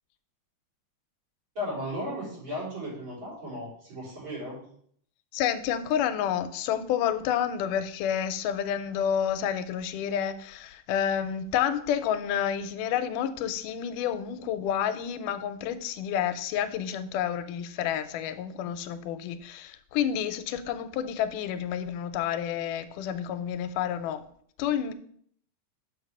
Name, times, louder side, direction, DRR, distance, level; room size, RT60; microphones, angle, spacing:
voice 1, 1.5-4.6, equal, 35° right, -7 dB, 4.6 m, -35 dB
voice 2, 5.3-24.2 24.6-24.9, left 9 dB, 90° left, 11 dB, 2.1 m, -29 dB
6.5 x 4.8 x 6.1 m, 0.63 s
omnidirectional pair, 3.6 m